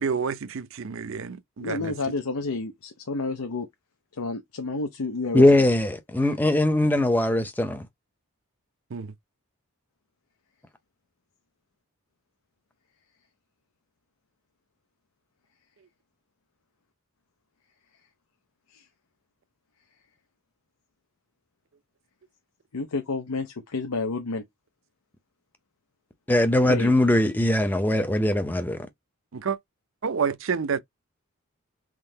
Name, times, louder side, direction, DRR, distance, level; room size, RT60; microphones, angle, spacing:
voice 1, 0.0-1.9 8.9-9.1 29.3-29.6 30.0-30.8, right 6 dB, 60° right, 0.5 m, -29 dB
voice 2, 1.6-3.7 4.2-5.5 6.2-6.4 18.7-18.8 22.7-24.4 26.6-26.9, left 3 dB, 90° left, 0.7 m, -30 dB
voice 3, 5.3-7.8 26.3-28.8, left 1 dB, 10° left, 0.5 m, -21 dB
3.7 x 3.0 x 2.7 m
head